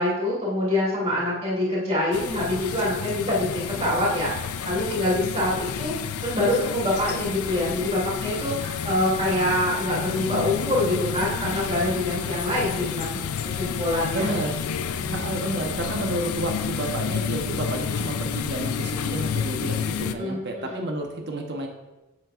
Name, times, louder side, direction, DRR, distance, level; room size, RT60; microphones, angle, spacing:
voice 1, 0.0-5.9 6.2-13.2 13.6-14.3 14.9-15.2 20.0-20.8, left 1 dB, 30° right, -5 dB, 2.6 m, -25 dB
sound 1, 2.1-20.1, left 7 dB, 75° left, 0.4 m, -30 dB
voice 2, 14.1-14.6 15.1-21.7, right 1 dB, 50° right, 2 dB, 0.9 m, -30 dB
7.7 x 7.4 x 2.4 m, 1.0 s
head